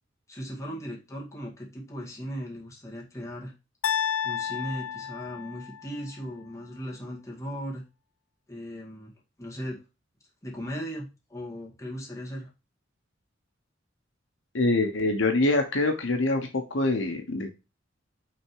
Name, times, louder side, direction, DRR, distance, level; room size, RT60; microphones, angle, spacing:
voice 1, 0.3-3.5 4.2-7.8 8.5-9.8 10.4-12.5, equal, 15° left, -3 dB, 2.0 m, -37 dB
sound 1, 3.8-6.0, left 9 dB, 85° left, 0.3 m, -31 dB
voice 2, 14.5-17.5, left 2 dB, 70° left, 5 dB, 1.0 m, -25 dB
6.3 x 3.5 x 4.7 m, 0.28 s
head